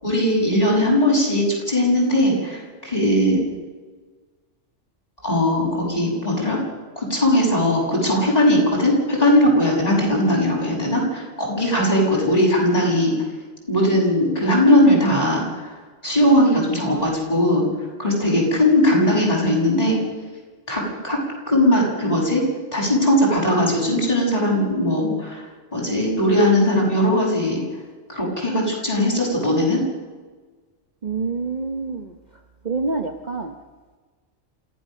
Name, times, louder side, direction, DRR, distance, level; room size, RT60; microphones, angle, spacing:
voice 1, 0.0-3.4 5.2-6.6 6.9-13.1 13.7-17.6 18.0-20.0 20.7-21.2 21.5-22.4 22.7-25.5 25.7-27.6 28.1-29.8, left 1 dB, 30° left, -3 dB, 6.9 m, -19 dB
voice 2, 3.3-3.6 10.1-10.2 16.9-17.2 18.5-18.6 31.0-32.2 32.6-33.5, right 4 dB, 40° right, 4 dB, 1.1 m, -28 dB
27.5 x 16.0 x 6.6 m, 1.4 s
omnidirectional pair, 1.3 m